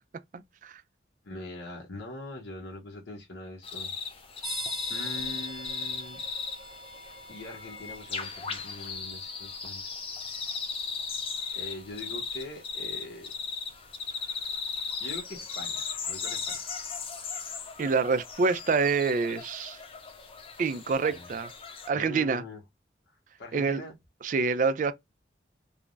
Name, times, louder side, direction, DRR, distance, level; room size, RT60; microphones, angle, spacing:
voice 1, 0.3-0.7 17.8-19.8 20.6-21.5 21.9-22.4 23.5-23.8 24.2-24.9, right 4 dB, 45° right, 0.3 m, -26 dB
voice 2, 1.2-3.9 4.9-6.2 7.3-9.8 11.5-13.3 15.0-16.6 21.1-21.3 21.9-22.6 23.1-24.0, left 2 dB, 75° left, 0.8 m, -42 dB
sound 1, 3.6-21.9, left 5 dB, 30° left, 0.5 m, -37 dB
sound 2, 4.4-17.0, equal, 20° right, 0.8 m, -46 dB
3.3 x 2.0 x 2.4 m
head